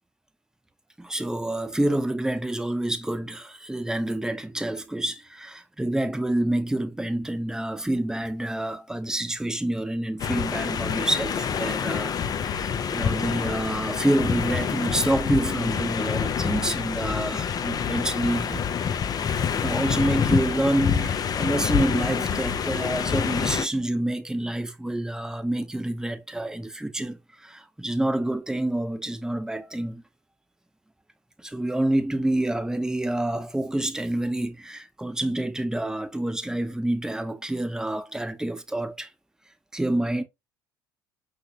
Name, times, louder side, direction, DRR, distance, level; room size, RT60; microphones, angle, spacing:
voice 1, 1.0-18.6 19.6-30.0 31.4-39.1 39.7-40.2, right 1 dB, 5° right, 0.8 m, -27 dB
sound 1, 10.2-23.6, left 7 dB, 35° left, 0.6 m, -27 dB
5.7 x 2.6 x 2.8 m
figure-of-eight pair, 60°, 11 cm